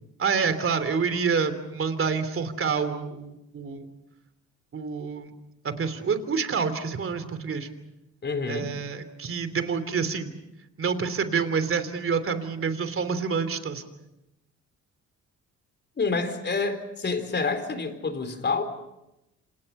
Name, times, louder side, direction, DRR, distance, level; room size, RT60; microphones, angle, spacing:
voice 1, 0.2-3.9 4.7-5.3 5.6-7.7 8.5-10.4 10.8-13.8, right 5 dB, 45° right, 11 dB, 3.2 m, -27 dB
voice 2, 8.2-8.7 16.0-18.6, left 4 dB, 35° left, 8 dB, 4.1 m, -28 dB
28.0 x 27.5 x 5.6 m, 0.90 s
cardioid pair, 90°, 30 cm